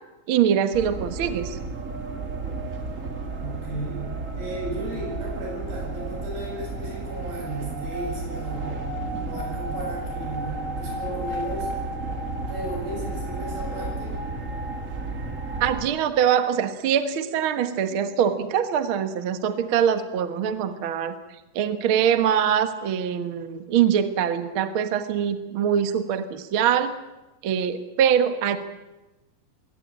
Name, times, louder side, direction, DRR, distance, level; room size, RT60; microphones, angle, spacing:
voice 1, 0.3-1.6 15.6-21.1 21.5-26.9 27.4-28.6, right 8 dB, 55° right, 10 dB, 1.5 m, -23 dB
sound 1, 0.7-15.8, right 2 dB, 30° right, 1.9 m, -32 dB
voice 2, 3.4-4.1 4.4-8.8 9.2-11.7 12.4-14.2, right 1 dB, 85° right, -1 dB, 9.5 m, -35 dB
22.0 x 17.5 x 8.7 m, 1.0 s
omnidirectional pair, 4.0 m